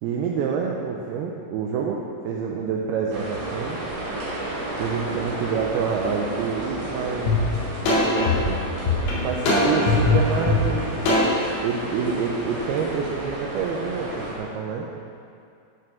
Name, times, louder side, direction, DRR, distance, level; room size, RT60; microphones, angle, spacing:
voice 1, 0.0-3.8 4.7-7.4 8.2-8.6 9.1-10.9 11.6-14.9, right 6 dB, 85° right, 0 dB, 2.2 m, -27 dB
sound 1, 3.1-14.4, right 1 dB, 60° right, 3.3 m, -32 dB
sound 2, 7.3-7.4 7.9-11.5, left 3 dB, 80° left, 4.3 m, -20 dB
12.0 x 4.8 x 6.4 m, 2.4 s
omnidirectional pair, 5.1 m